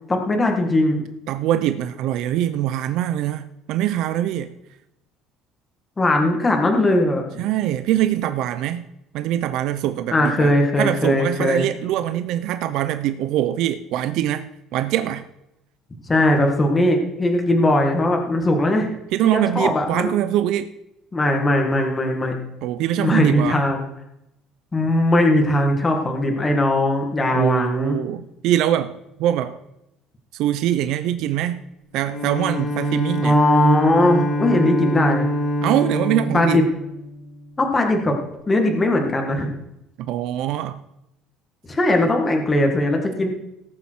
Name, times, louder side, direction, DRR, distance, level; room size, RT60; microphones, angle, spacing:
voice 1, 0.1-1.0 6.0-7.4 10.1-11.6 16.1-18.9 19.2-20.1 21.1-22.3 23.0-23.8 24.7-28.0 33.2-35.3 36.3-36.6 37.6-38.1 38.5-39.5 41.7-43.3, left 1 dB, 15° left, 3 dB, 1.6 m, -19 dB
voice 2, 1.3-4.5 7.4-8.9 9.1-15.2 19.1-20.7 22.6-23.6 27.3-29.6 30.3-31.6 31.9-33.4 35.6-36.6 40.0-40.8, right 12 dB, 65° right, 11 dB, 0.6 m, -23 dB
Bowed string instrument, 32.0-37.6, equal, 80° left, 2.3 m, -25 dB
18.0 x 7.2 x 4.6 m, 0.86 s
cardioid pair, 155°, 0 cm